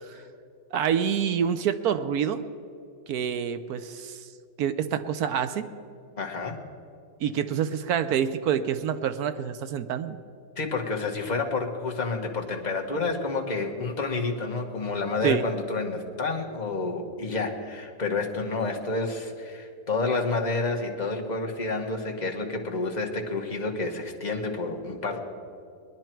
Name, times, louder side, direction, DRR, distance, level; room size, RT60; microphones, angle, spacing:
voice 1, 0.7-2.4 3.1-4.2 4.6-5.7 7.2-10.2 15.2-15.4, right 8 dB, 70° right, 11 dB, 0.9 m, -27 dB
voice 2, 6.2-6.6 10.6-25.2, left 3 dB, 25° left, 1 dB, 1.1 m, -29 dB
21.0 x 10.5 x 4.5 m, 2.5 s
omnidirectional pair, 2.1 m